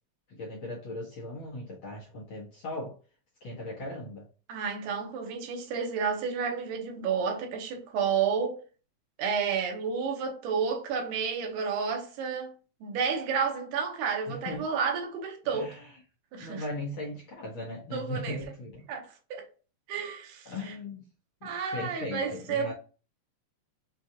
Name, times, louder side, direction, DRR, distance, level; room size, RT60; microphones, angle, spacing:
voice 1, 0.3-3.0 3.4-4.3 14.3-14.7 15.4-15.9 16.4-18.9 20.4-21.1 21.4-22.7, left 1 dB, 60° left, 1.4 m, -38 dB
voice 2, 4.5-8.6 9.2-12.5 12.8-15.8 16.3-16.6 17.9-18.4 18.9-19.5 19.9-20.7 21.4-22.7, right 6 dB, 90° right, 2.4 m, -31 dB
6.0 x 2.3 x 2.7 m
omnidirectional pair, 3.5 m